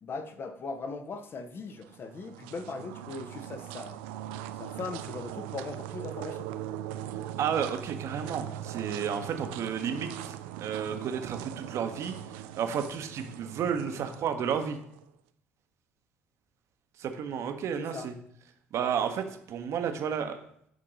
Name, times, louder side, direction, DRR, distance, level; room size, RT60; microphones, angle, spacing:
voice 1, 0.0-4.0 4.6-6.5 17.8-18.1, left 4 dB, 35° left, 8 dB, 0.7 m, -39 dB
sound 1, 1.7-15.0, right 12 dB, 65° right, 0.3 m, -40 dB
voice 2, 7.2-14.8 17.0-18.1 18.7-20.4, right 7 dB, 50° right, 6 dB, 0.8 m, -32 dB
8.9 x 3.8 x 3.8 m, 0.70 s
figure-of-eight pair, 55°, 6 cm